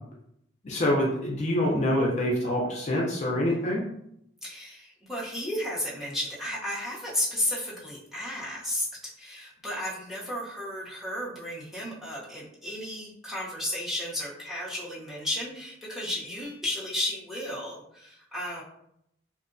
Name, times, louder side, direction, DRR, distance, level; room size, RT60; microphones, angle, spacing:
voice 1, 0.6-3.8, left 1 dB, 35° left, -2 dB, 0.4 m, -26 dB
voice 2, 4.4-8.9 9.2-18.6, left 1 dB, ahead, -8 dB, 0.6 m, -33 dB
2.6 x 2.1 x 2.5 m, 0.74 s
head